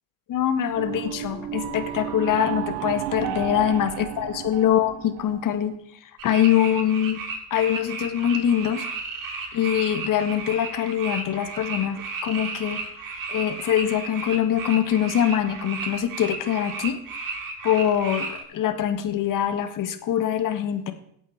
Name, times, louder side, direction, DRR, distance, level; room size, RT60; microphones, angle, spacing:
voice 1, 0.3-5.7 6.0-7.2 7.5-8.9 9.5-13.0 13.3-17.0 17.6-20.9, left 10 dB, 50° left, 10 dB, 1.7 m, -24 dB
sound 1, 0.7-5.8, right 11 dB, 70° right, 1.2 m, -33 dB
sound 2, 6.2-18.4, right 4 dB, 50° right, 5.3 m, -34 dB
15.0 x 8.3 x 4.7 m, 0.72 s
supercardioid pair, 90°, 42 cm